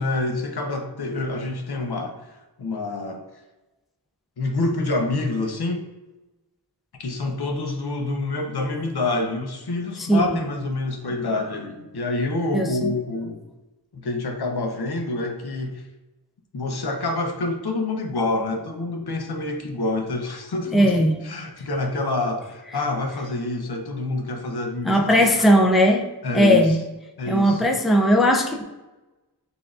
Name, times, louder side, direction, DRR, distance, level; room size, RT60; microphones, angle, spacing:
voice 1, 0.0-2.3 2.6-3.2 4.4-5.8 7.0-13.4 13.9-15.8 16.5-25.6 26.2-26.8 27.2-27.7, left 2 dB, 70° left, 3 dB, 0.7 m, -27 dB
voice 2, 10.0-10.4 12.5-12.9 20.7-21.2 24.9-26.1 26.3-26.8 27.3-28.6, equal, ahead, 2 dB, 0.4 m, -18 dB
6.6 x 2.6 x 2.4 m, 1.1 s
wide cardioid pair, 75°, 40 cm